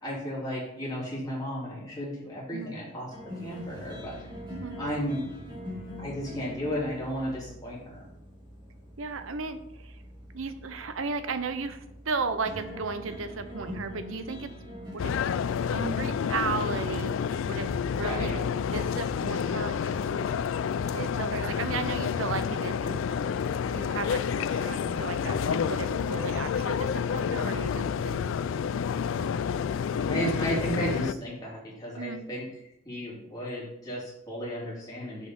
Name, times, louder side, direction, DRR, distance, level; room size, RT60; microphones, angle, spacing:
voice 1, 0.0-4.2 4.8-5.3 6.0-8.1 18.0-18.5 30.0-32.4 32.8-35.3, equal, 20° left, -6 dB, 2.9 m, -34 dB
sound 1, 3.1-14.9, equal, 20° right, 2.7 m, -43 dB
voice 2, 9.0-10.0 10.3-14.5 14.9-15.3 15.7-18.4 18.7-20.3 20.9-23.0 23.7-28.2 32.0-32.2, right 4 dB, 70° right, 10 dB, 0.7 m, -35 dB
sound 2, 15.0-31.1, left 7 dB, 65° left, 0.3 m, -29 dB
6.3 x 5.4 x 5.5 m, 0.80 s
head